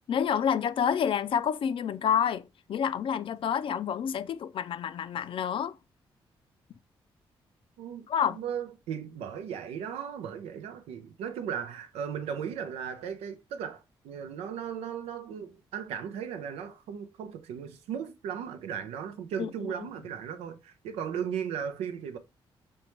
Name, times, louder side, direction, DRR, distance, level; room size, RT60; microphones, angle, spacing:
voice 1, 0.1-5.8 8.1-8.4 19.4-19.9, left 8 dB, 60° left, 0.4 m, -29 dB
voice 2, 8.3-22.2, right 8 dB, 90° right, 0.5 m, -36 dB
5.2 x 2.2 x 3.0 m
supercardioid pair, 60°, 10 cm